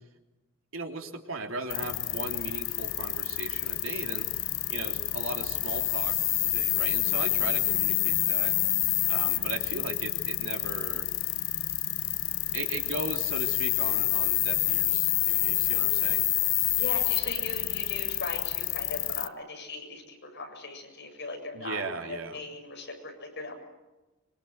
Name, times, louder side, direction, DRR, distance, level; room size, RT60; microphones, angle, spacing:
voice 1, 0.7-4.3 4.7-8.5 9.1-11.1 12.5-16.3 21.5-22.4, right 3 dB, 75° right, 3 dB, 3.4 m, -37 dB
sound 1, 1.7-19.3, left 16 dB, 80° left, 1.0 m, -28 dB
voice 2, 16.8-23.6, left 3 dB, 55° left, 2 dB, 7.8 m, -39 dB
25.0 x 25.0 x 8.1 m, 1.1 s
head